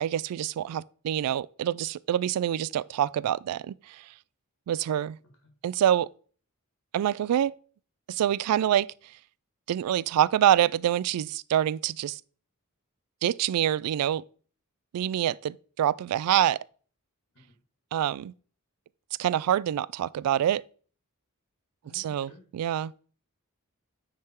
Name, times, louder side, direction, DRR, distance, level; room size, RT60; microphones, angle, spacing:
voice 1, 0.0-4.0 4.7-5.2 5.6-6.1 6.9-7.5 8.1-8.9 9.7-12.2 13.2-14.2 14.9-16.6 17.9-18.3 19.2-20.6 21.9-22.9, right 10 dB, 90° right, 0.3 m, -26 dB
voice 2, 4.8-5.1 5.4-5.5 17.3-17.4 21.8-22.4, left 1 dB, 65° left, 1.9 m, -55 dB
9.4 x 3.6 x 4.4 m
head